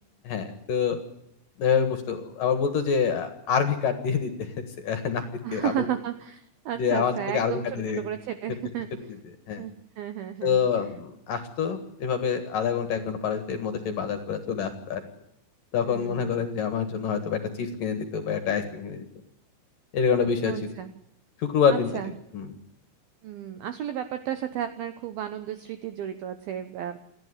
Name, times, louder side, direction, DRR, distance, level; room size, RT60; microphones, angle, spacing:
voice 1, 0.2-1.0 1.6-5.2 5.5-5.8 6.8-8.0 9.5-9.6 10.4-15.0 15.7-19.1 19.9-20.5 21.4-21.9 22.3-22.5, left 6 dB, 60° left, 8 dB, 2.6 m, -26 dB
voice 2, 5.4-9.1 9.6-10.6 15.8-16.5 20.5-20.9 21.7-22.1 23.2-27.0, right 10 dB, 85° right, 10 dB, 2.1 m, -33 dB
29.0 x 11.5 x 9.8 m, 0.80 s
omnidirectional pair, 5.7 m